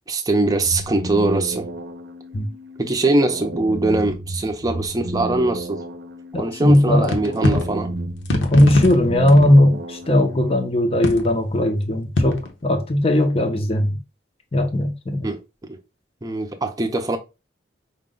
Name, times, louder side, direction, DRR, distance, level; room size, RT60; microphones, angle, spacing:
voice 1, 0.1-1.7 2.8-5.8 6.4-7.9 15.2-15.8 16.2-17.2, right 2 dB, 20° right, 0.6 m, -22 dB
sound 1, 0.6-10.6, right 1 dB, 70° right, 0.7 m, -32 dB
voice 2, 6.3-7.1 8.5-14.0 14.5-15.3, left 1 dB, 30° left, 0.6 m, -18 dB
sound 2, 6.7-6.8 7.0-7.7 8.2-9.6 10.0-10.1 11.0-11.3 12.2-12.5, left 2 dB, 80° left, 0.9 m, -22 dB
5.1 x 2.2 x 3.7 m
head